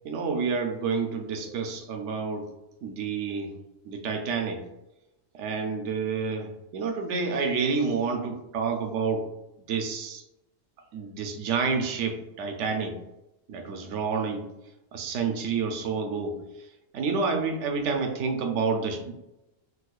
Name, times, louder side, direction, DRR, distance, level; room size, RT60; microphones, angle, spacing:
voice 1, 0.0-2.5 2.8-3.5 3.8-4.6 5.4-9.2 9.7-10.2 10.9-13.0 13.5-14.4 14.9-16.4 16.9-19.1, right 5 dB, 65° right, 4 dB, 0.8 m, -29 dB
4.0 x 2.3 x 2.4 m, 0.93 s
omnidirectional pair, 1.4 m